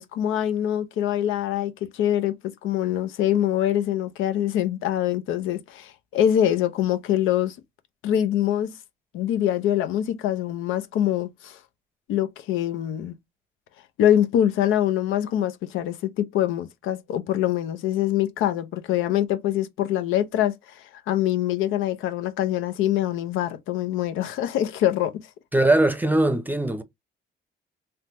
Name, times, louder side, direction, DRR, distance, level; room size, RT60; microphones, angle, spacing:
voice 1, 0.0-7.6 8.0-8.7 9.1-11.6 12.1-13.2 14.0-25.1, left 11 dB, 90° left, 0.6 m, -24 dB
voice 2, 25.5-26.8, right 2 dB, 10° right, 0.6 m, -20 dB
3.4 x 2.1 x 2.8 m
cardioid pair, 90°, 20 cm